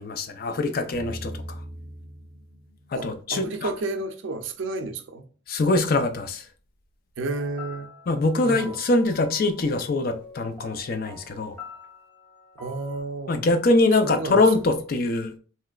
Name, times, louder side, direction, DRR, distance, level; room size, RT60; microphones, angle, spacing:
voice 1, 0.0-1.4 2.9-3.7 5.5-6.4 8.1-11.6 13.3-15.3, left 2 dB, 50° left, 0.4 m, -23 dB
sound 1, 0.9-3.9, equal, 25° left, 1.0 m, -40 dB
voice 2, 2.9-5.2 7.2-7.9 8.4-8.8 12.6-13.4 14.0-14.6, right 3 dB, 80° right, 0.5 m, -31 dB
sound 2, 7.3-13.0, left 4 dB, 10° left, 0.7 m, -45 dB
3.2 x 2.9 x 2.3 m
head